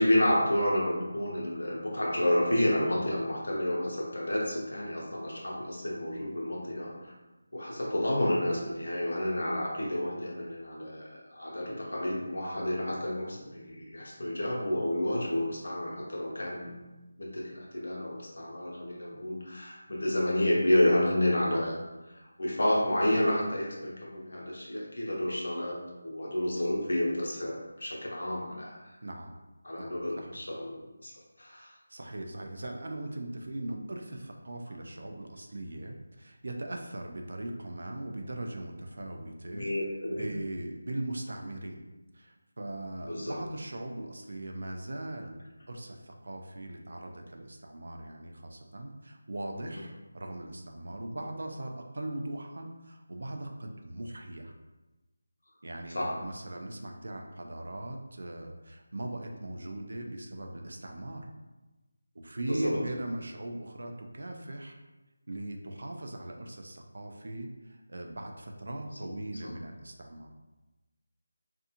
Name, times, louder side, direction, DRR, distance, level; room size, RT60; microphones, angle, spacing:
voice 1, 0.0-7.1 7.5-16.7 17.2-21.7 22.1-29.0 29.6-31.7 39.5-40.3 43.0-43.4 49.7-49.9 55.9-56.2 62.5-62.8 69.0-69.1 69.4-69.5, left 1 dB, 75° left, -2 dB, 0.7 m, -30 dB
voice 2, 29.0-29.3 29.8-30.4 31.9-39.7 40.1-41.8 42.1-54.5 55.6-61.3 62.1-64.8 65.3-70.3, right 1 dB, 55° right, 3 dB, 0.4 m, -39 dB
2.5 x 2.3 x 2.8 m, 1.1 s
figure-of-eight pair, 180°, 0 cm